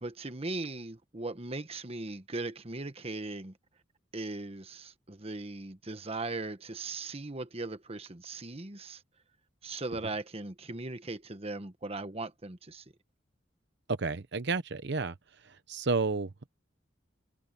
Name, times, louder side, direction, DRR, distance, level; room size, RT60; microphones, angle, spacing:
voice 1, 0.0-3.5 4.1-9.0 9.6-12.8, right 2 dB, 30° right, 1.2 m, -38 dB
voice 2, 13.9-15.1 15.4-16.5, right 4 dB, 60° right, 0.9 m, -31 dB
head